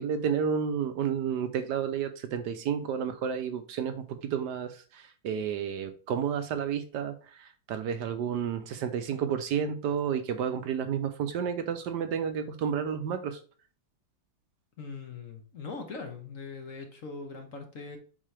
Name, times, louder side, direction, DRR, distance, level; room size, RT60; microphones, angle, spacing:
voice 1, 0.0-13.4, right 7 dB, 70° right, 1.2 m, -31 dB
voice 2, 14.8-18.0, left 4 dB, 50° left, 1.2 m, -41 dB
7.4 x 4.7 x 3.3 m
omnidirectional pair, 2.1 m